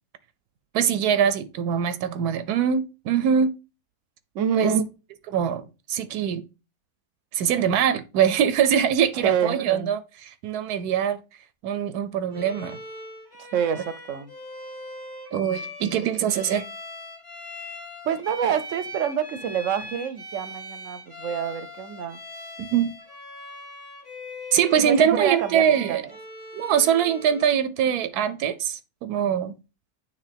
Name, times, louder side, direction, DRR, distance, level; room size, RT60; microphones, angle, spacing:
voice 1, 0.7-3.5 4.5-4.8 5.3-6.4 7.3-11.2 11.6-12.8 15.3-16.7 22.6-22.9 24.5-26.0 26.5-29.5, right 8 dB, 85° right, 1.1 m, -23 dB
voice 2, 4.3-4.9 9.2-9.6 13.5-14.3 18.0-22.2 24.8-26.1, right 8 dB, 65° right, 0.9 m, -27 dB
Bowed string instrument, 12.3-27.5, left 1 dB, 15° left, 1.4 m, -40 dB
9.2 x 3.3 x 3.3 m
omnidirectional pair, 1.6 m